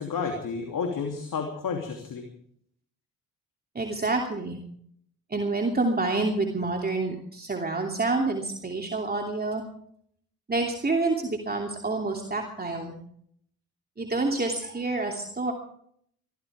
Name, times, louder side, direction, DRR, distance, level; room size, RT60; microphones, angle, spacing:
voice 1, 0.0-2.2, left 5 dB, 50° left, 3 dB, 3.0 m, -31 dB
voice 2, 3.7-4.6 5.3-9.6 10.5-12.9 14.0-15.5, right 3 dB, 20° right, 1 dB, 2.8 m, -28 dB
24.5 x 15.0 x 3.5 m, 0.66 s
hypercardioid pair, 50°, 42 cm